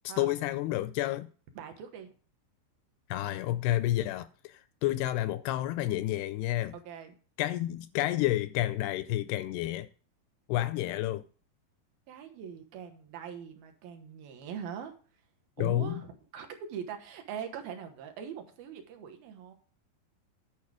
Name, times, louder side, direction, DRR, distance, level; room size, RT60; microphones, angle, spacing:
voice 1, 0.2-1.3 3.1-6.7 7.4-9.9 10.5-11.2 15.6-16.0, left 15 dB, 85° left, 2.3 m, -30 dB
voice 2, 1.6-2.1 6.7-7.2 10.8-11.0 12.1-14.9 15.6-19.5, right 8 dB, 70° right, 2.6 m, -42 dB
10.5 x 5.4 x 4.8 m
omnidirectional pair, 5.0 m